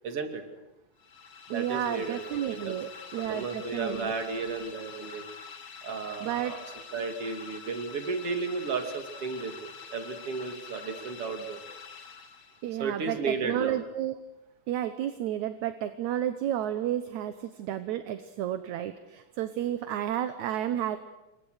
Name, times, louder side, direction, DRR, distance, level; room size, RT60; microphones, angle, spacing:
voice 1, 0.0-0.4 1.5-2.8 3.2-5.2 5.8-6.6 6.9-11.6 12.8-13.8, right 4 dB, 45° right, 5 dB, 3.3 m, -34 dB
sound 1, 1.0-12.8, left 6 dB, 50° left, 2.7 m, -46 dB
voice 2, 1.5-4.1 6.2-6.6 12.6-14.1 14.7-21.0, right 11 dB, 70° right, 10 dB, 2.2 m, -31 dB
28.5 x 24.5 x 6.5 m, 0.97 s
omnidirectional pair, 3.7 m